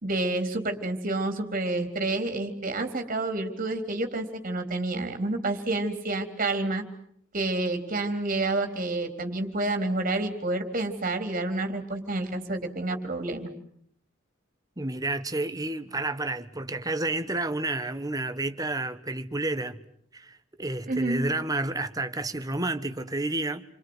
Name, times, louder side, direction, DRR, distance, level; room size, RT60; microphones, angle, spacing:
voice 1, 0.0-6.8 7.3-13.5 20.9-21.2, right 2 dB, 45° right, 3.8 m, -29 dB
voice 2, 14.8-19.8 20.1-23.6, right 2 dB, 20° right, 1.3 m, -30 dB
29.5 x 24.5 x 8.0 m
head